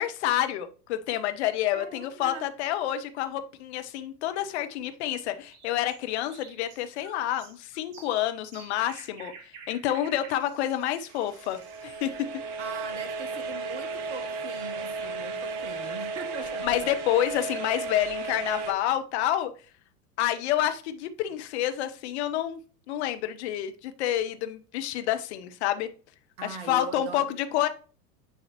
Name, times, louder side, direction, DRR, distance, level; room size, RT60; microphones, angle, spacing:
voice 1, 0.0-9.3 9.7-12.1 16.6-19.5 20.2-22.6 22.9-25.9 26.4-27.7, left 12 dB, 45° left, 0.9 m, -28 dB
voice 2, 1.7-2.6 12.6-16.9 26.4-27.4, right 4 dB, 15° right, 0.3 m, -41 dB
sound 1, 5.4-12.0, right 5 dB, 50° right, 2.2 m, -50 dB
sound 2, 11.1-18.7, right 3 dB, 30° right, 1.0 m, -34 dB
9.9 x 4.1 x 2.9 m
figure-of-eight pair, 90°, 47 cm